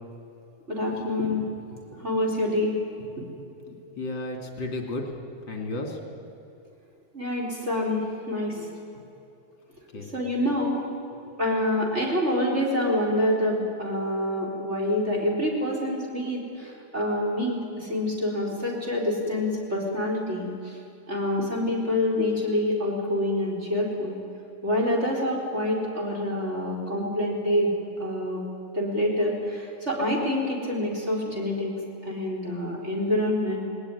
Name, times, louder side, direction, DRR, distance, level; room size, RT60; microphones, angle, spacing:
voice 1, 0.7-1.4 1.9-2.7 7.1-8.7 10.1-10.8 11.4-20.8 21.1-24.2 24.6-27.7 28.0-28.4 28.7-31.8 32.0-33.6, left 1 dB, 20° right, -2 dB, 4.2 m, -26 dB
voice 2, 3.9-5.2 5.5-6.0 9.9-10.1, left 2 dB, 35° left, 2 dB, 3.2 m, -33 dB
19.5 x 19.0 x 9.8 m, 2.8 s
omnidirectional pair, 3.8 m